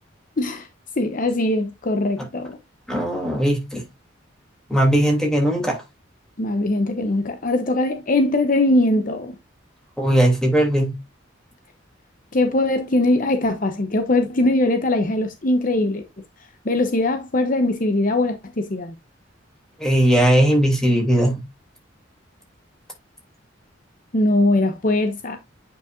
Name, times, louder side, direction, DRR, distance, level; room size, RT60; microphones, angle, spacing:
voice 1, 0.4-0.7 1.0-2.6 6.4-9.3 12.3-16.0 16.6-18.9 24.1-25.4, left 2 dB, 45° left, 0.8 m, -21 dB
voice 2, 2.9-3.8 4.7-5.8 10.0-10.9 19.8-21.4, right 1 dB, 5° left, 2.8 m, -18 dB
9.0 x 5.6 x 2.5 m
head